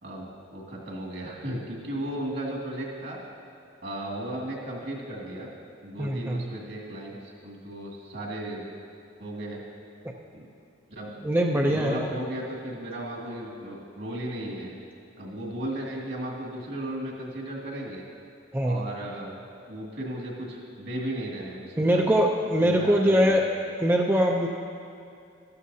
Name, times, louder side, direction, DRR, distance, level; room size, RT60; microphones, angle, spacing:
voice 1, 0.0-3.2 3.8-5.5 5.8-8.6 9.2-9.6 10.3-10.4 10.9-11.1 11.7-14.8 15.2-18.0 18.6-19.4 19.7-22.1 22.5-23.4, right 1 dB, 65° right, -3 dB, 2.2 m, -35 dB
voice 2, 6.0-6.4 11.2-12.1 18.5-18.8 21.8-23.4 23.8-24.5, equal, 10° right, 0 dB, 0.5 m, -22 dB
13.5 x 13.0 x 2.8 m, 2.5 s
head